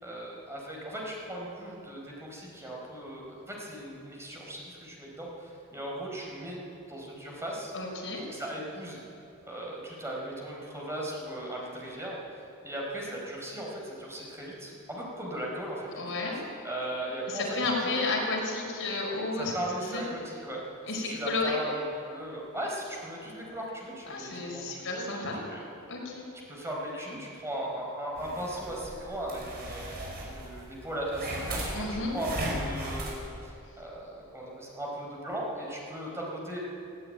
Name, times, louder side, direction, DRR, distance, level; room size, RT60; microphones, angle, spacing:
voice 1, 0.0-6.6 6.9-7.7 8.2-9.0 9.5-16.2 16.6-17.6 17.8-18.0 19.3-20.6 20.9-21.7 22.1-25.6 26.5-32.3 32.5-36.6, right 1 dB, 10° right, -3 dB, 4.5 m, -38 dB
voice 2, 7.7-8.2 15.9-16.4 17.3-19.5 19.8-20.0 20.9-21.6 24.0-25.4 25.9-26.2 31.7-32.1, left 3 dB, 65° left, -1 dB, 5.1 m, -32 dB
sound 1, 28.2-33.2, right 1 dB, 45° right, 5.5 m, -37 dB
18.0 x 16.0 x 9.0 m, 2.6 s
head